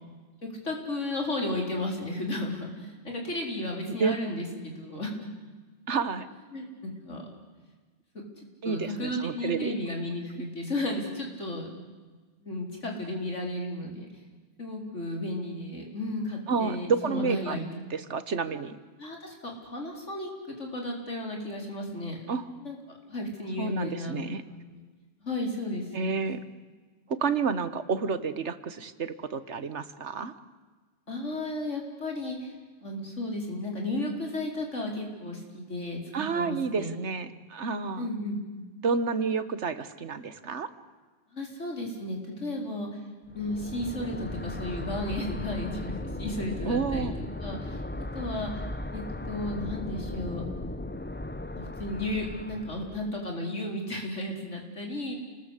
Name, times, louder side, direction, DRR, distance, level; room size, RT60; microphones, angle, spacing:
voice 1, 0.6-5.3 6.5-7.2 8.6-11.7 12.4-14.1 14.6-17.9 19.0-22.2 22.6-22.8 23.1-24.8 25.2-26.2 31.1-32.5 32.8-36.9 38.0-38.4 41.3-43.0 43.3-47.1 47.4-47.8 48.1-48.5 48.9-50.4 51.5-55.1, left 1 dB, 85° left, 1 dB, 4.8 m, -34 dB
voice 2, 5.9-6.3 8.6-9.8 16.5-17.6 17.9-18.8 22.3-22.5 23.6-24.4 25.9-26.4 27.1-30.3 36.1-38.1 38.8-40.7 46.6-47.1, right 5 dB, 70° right, 12 dB, 1.6 m, -30 dB
sound 1, 43.3-53.1, left 2 dB, 15° left, 0.5 m, -37 dB
28.5 x 20.0 x 8.3 m, 1.4 s
omnidirectional pair, 1.2 m